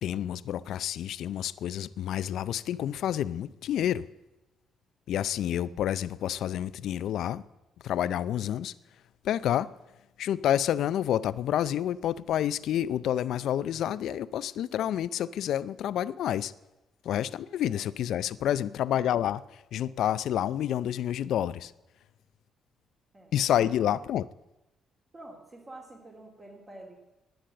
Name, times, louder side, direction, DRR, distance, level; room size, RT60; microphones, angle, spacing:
voice 1, 0.0-4.1 5.1-7.4 7.8-8.7 9.2-9.7 10.2-16.5 17.0-19.4 19.7-21.7 23.3-24.2, left 11 dB, 75° left, 0.4 m, -29 dB
voice 2, 23.6-24.1 25.1-27.0, right 2 dB, 30° right, 2.5 m, -48 dB
10.5 x 10.0 x 7.7 m
cardioid pair, 90°, 0 cm